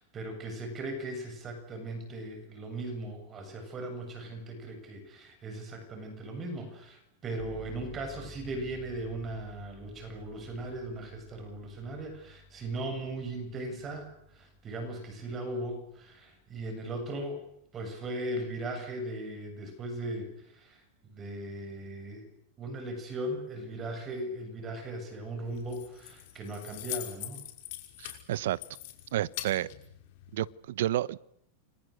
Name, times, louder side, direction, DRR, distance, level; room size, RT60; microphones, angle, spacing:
voice 1, 0.0-17.4 17.7-20.8 21.1-22.3 22.6-27.4, right 1 dB, 20° right, 5 dB, 7.5 m, -38 dB
sound 1, 7.4-17.9, left 2 dB, 10° left, 5.8 m, -53 dB
Keys jangling, 25.5-30.5, left 15 dB, 55° left, 5.6 m, -43 dB
voice 2, 28.0-28.6 29.1-29.7 30.3-31.2, right 13 dB, 75° right, 19 dB, 1.0 m, -30 dB
30.0 x 25.0 x 6.6 m, 0.72 s
supercardioid pair, 155°, 0 cm